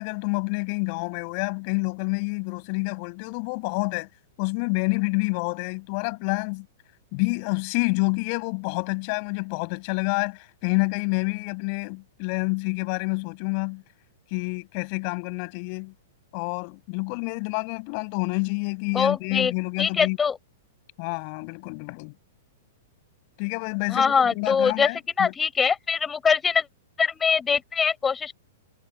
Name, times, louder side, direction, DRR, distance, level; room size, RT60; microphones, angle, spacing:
voice 1, 0.0-4.1 4.4-6.7 7.1-13.8 14.3-15.9 16.3-20.2 21.0-22.1 23.4-25.3, left 38 dB, 45° left, 8.0 m, -28 dB
voice 2, 18.9-19.5 19.8-20.4 23.9-24.9 25.2-26.7 27.0-28.3, left 6 dB, 15° left, 6.4 m, -23 dB
hypercardioid pair, 110°, 0 cm